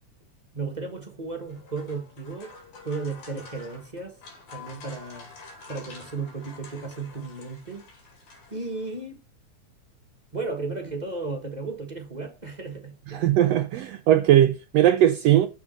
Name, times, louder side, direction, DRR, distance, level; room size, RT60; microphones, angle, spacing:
voice 1, 0.5-2.5 2.8-4.2 4.5-5.3 5.7-7.9 8.5-9.2 10.3-13.3, right 3 dB, 50° right, 0.5 m, -34 dB
sound 1, 1.4-9.0, left 4 dB, 80° left, 3.9 m, -48 dB
voice 2, 13.1-15.5, right 12 dB, 80° right, 1.5 m, -19 dB
7.2 x 7.1 x 5.4 m
omnidirectional pair, 3.5 m